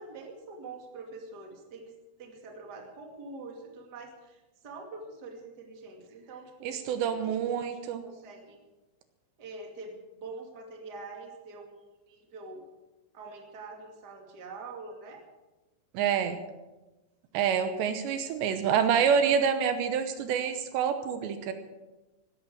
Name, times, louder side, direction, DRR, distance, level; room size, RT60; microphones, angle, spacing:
voice 1, 0.0-1.9 2.2-8.6 9.4-12.6 13.1-15.2, right 3 dB, 30° right, 1 dB, 2.0 m, -45 dB
voice 2, 6.6-8.0 15.9-16.4 17.3-21.5, right 7 dB, 75° right, 9 dB, 3.1 m, -27 dB
16.5 x 12.5 x 6.2 m, 1.1 s
omnidirectional pair, 5.3 m